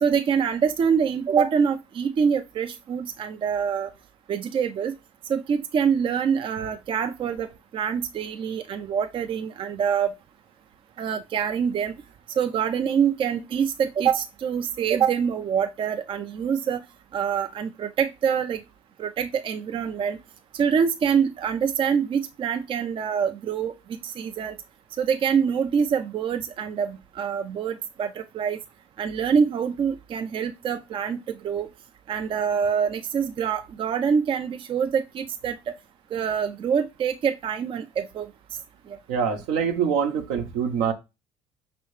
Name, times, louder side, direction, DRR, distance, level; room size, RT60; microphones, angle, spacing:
voice 1, 0.0-3.9 4.3-4.9 5.3-10.1 11.0-11.9 12.4-16.8 17.1-18.6 19.0-20.2 20.5-24.5 25.0-28.6 29.0-31.7 32.1-35.7 36.1-38.3 38.9-39.0, right 7 dB, 40° right, 0.4 m, -25 dB
voice 2, 39.1-40.9, right 7 dB, 75° right, 0.8 m, -24 dB
5.5 x 2.9 x 3.1 m
hypercardioid pair, 65°, 13 cm